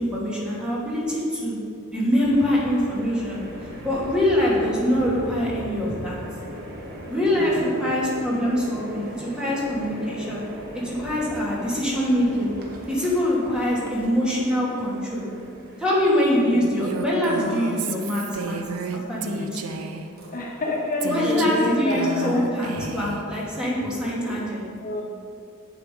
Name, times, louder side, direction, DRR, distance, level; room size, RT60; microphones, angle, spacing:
voice 1, 0.0-1.6 1.9-3.4 3.8-6.2 7.1-10.4 10.7-12.5 12.9-15.2 15.8-18.6 19.1-19.8 21.0-24.7, left 1 dB, 5° right, -6 dB, 2.5 m, -24 dB
sound 1, 2.2-21.6, equal, 50° right, 1.5 m, -40 dB
voice 2, 7.3-7.8 16.3-16.7 20.3-22.8 24.8-25.0, left 2 dB, 40° left, -2 dB, 1.0 m, -29 dB
Female speech woman speaking, 16.8-20.1 21.0-23.2, right 5 dB, 90° right, 0.7 m, -32 dB
8.1 x 7.9 x 5.3 m, 2.7 s
head